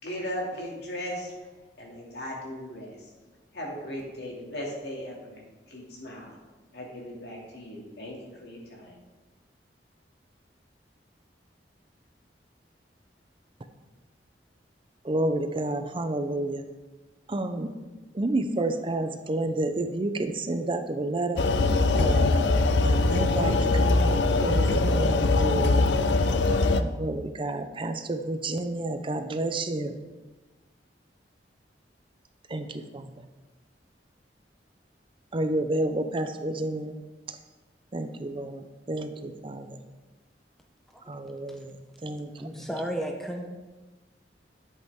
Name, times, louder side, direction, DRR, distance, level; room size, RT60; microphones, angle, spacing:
voice 1, 0.0-1.3 1.8-3.0 3.5-5.4 5.7-6.3 6.7-9.0, equal, 65° left, -2 dB, 2.5 m, -37 dB
voice 2, 15.0-16.6 17.3-17.7 18.1-21.4 21.9-22.6 22.8-23.6 23.8-26.2 26.8-29.9 32.5-33.1 35.3-36.9 37.3-37.4 37.9-39.7 41.1-41.7 42.0-42.6, right 2 dB, 30° right, 8 dB, 0.5 m, -30 dB
sound 1, 21.4-26.8, left 3 dB, 85° left, 0.5 m, -22 dB
voice 3, 42.4-43.5, equal, ahead, 2 dB, 0.7 m, -32 dB
11.0 x 7.7 x 3.6 m, 1.2 s
head